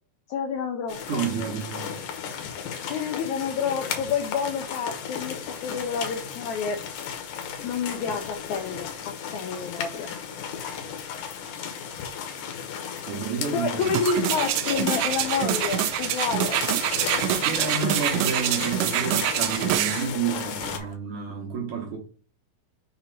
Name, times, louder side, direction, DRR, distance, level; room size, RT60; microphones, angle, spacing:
voice 1, 0.3-1.2 2.8-6.8 7.6-10.1 13.5-16.6, left 6 dB, 85° left, 1.7 m, -29 dB
sound 1, 0.9-20.8, left 7 dB, 70° left, 2.3 m, -34 dB
voice 2, 1.1-2.2 10.0-10.3 13.0-13.9 17.4-22.0, right 6 dB, 65° right, 2.0 m, -30 dB
sound 2, 13.8-20.1 20.6-20.7, right 13 dB, 85° right, 2.5 m, -26 dB
6.5 x 2.9 x 5.2 m
omnidirectional pair, 4.4 m